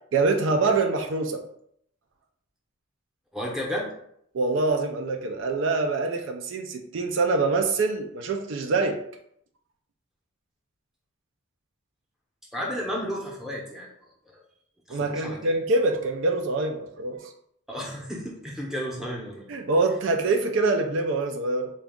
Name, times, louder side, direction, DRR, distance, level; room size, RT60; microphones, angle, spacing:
voice 1, 0.1-1.4 4.3-9.0 14.9-17.3 19.5-21.7, right 3 dB, 60° right, 5 dB, 0.4 m, -25 dB
voice 2, 3.3-3.9 12.5-13.9 14.3-14.4 14.9-15.6 17.7-19.5, equal, ahead, -3 dB, 0.7 m, -33 dB
3.9 x 2.3 x 3.5 m, 0.69 s
head